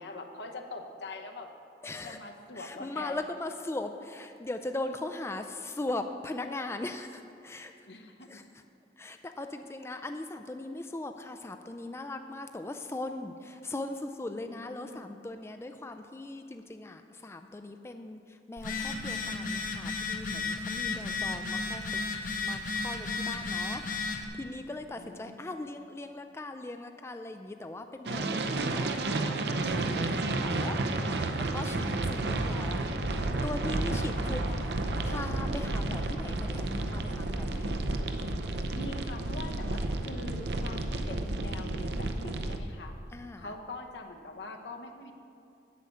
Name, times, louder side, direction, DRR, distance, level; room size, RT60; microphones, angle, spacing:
voice 1, 0.0-1.5 2.0-3.2 7.9-8.4 14.5-15.1 24.9-25.5 34.1-34.8 38.7-43.0 43.4-45.1, left 2 dB, 80° left, 4 dB, 1.0 m, -43 dB
voice 2, 1.8-2.2 2.6-7.7 8.3-8.4 9.0-21.9 22.4-23.8 24.1-30.8 31.1-34.4 35.0-37.8 43.1-43.5, left 2 dB, 15° left, 7 dB, 0.3 m, -39 dB
Telephone, 18.6-24.2, left 3 dB, 50° left, 0.9 m, -33 dB
sound 1, 28.1-42.6, right 2 dB, 70° right, 0.7 m, -31 dB
8.3 x 6.8 x 8.4 m, 2.5 s
head